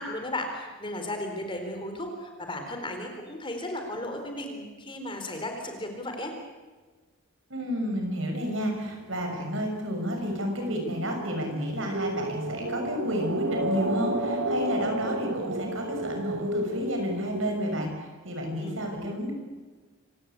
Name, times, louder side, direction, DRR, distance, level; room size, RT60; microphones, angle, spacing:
voice 1, 0.0-6.3 18.6-18.7, left 1 dB, 25° left, 4 dB, 4.1 m, -35 dB
voice 2, 7.5-19.3, equal, 65° right, 3 dB, 6.6 m, -31 dB
sound 1, 8.6-17.9, right 1 dB, 85° right, 2.0 m, -33 dB
26.0 x 17.5 x 8.4 m, 1.3 s
head